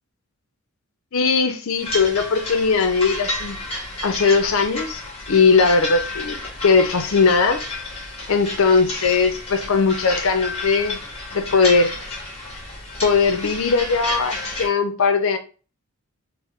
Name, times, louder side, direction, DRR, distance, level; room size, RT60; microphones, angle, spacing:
voice 1, 1.1-3.6 4.0-5.0 5.3-7.6 8.3-11.0 11.3-12.0 13.0-15.4, left 4 dB, 65° left, 0.5 m, -19 dB
sound 1, 1.8-14.7, left 2 dB, 30° left, 1.1 m, -31 dB
3.6 x 2.1 x 3.1 m
head